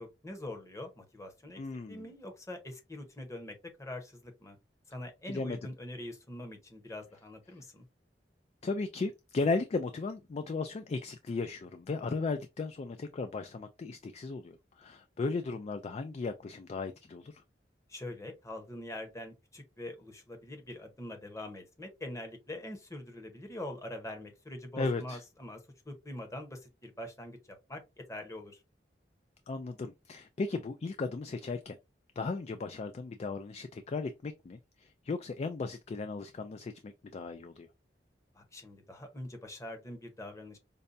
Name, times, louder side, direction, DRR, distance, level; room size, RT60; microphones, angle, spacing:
voice 1, 0.0-1.6 1.9-4.6 4.9-7.8 17.9-28.6 38.3-40.6, left 1 dB, 20° left, 0.9 m, -44 dB
voice 2, 1.6-2.1 5.3-5.6 8.6-17.4 24.8-25.2 29.5-31.8 32.2-37.7, left 3 dB, 40° left, 0.3 m, -36 dB
5.3 x 2.2 x 2.6 m
head